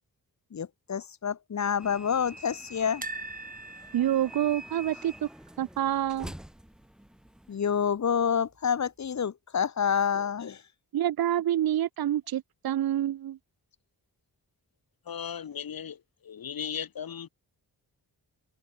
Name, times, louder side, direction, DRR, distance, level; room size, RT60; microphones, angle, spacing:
voice 1, 0.5-3.0 7.5-10.6, left 7 dB, 50° left, 1.0 m, -28 dB
sound 1, 1.8-7.6, equal, ahead, 0.8 m, -46 dB
sound 2, 3.0-6.1 6.3-6.5 6.8-6.9 8.1-8.6 9.2-9.3, right 3 dB, 25° right, 1.7 m, -43 dB
voice 2, 3.9-5.3 5.6-6.3 10.9-13.4, right 11 dB, 80° right, 0.7 m, -27 dB
voice 3, 15.1-17.3, left 8 dB, 75° left, 2.0 m, -37 dB
open air
wide cardioid pair, 145°, 36 cm